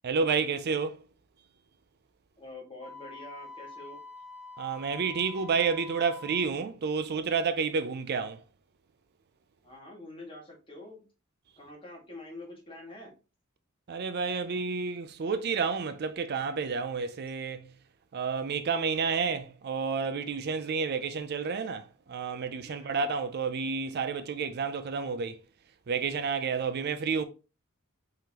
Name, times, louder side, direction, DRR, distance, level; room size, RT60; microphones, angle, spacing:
voice 1, 0.0-1.0 4.6-8.4 13.9-17.7 18.1-25.4 25.9-27.3, right 5 dB, 50° right, 0.4 m, -30 dB
voice 2, 2.4-4.0 9.6-11.0 11.6-13.1 22.6-23.1, left 2 dB, 25° left, 1.7 m, -46 dB
Wind instrument woodwind instrument, 2.8-6.5, left 3 dB, 30° right, 1.7 m, -46 dB
4.9 x 3.8 x 2.9 m
head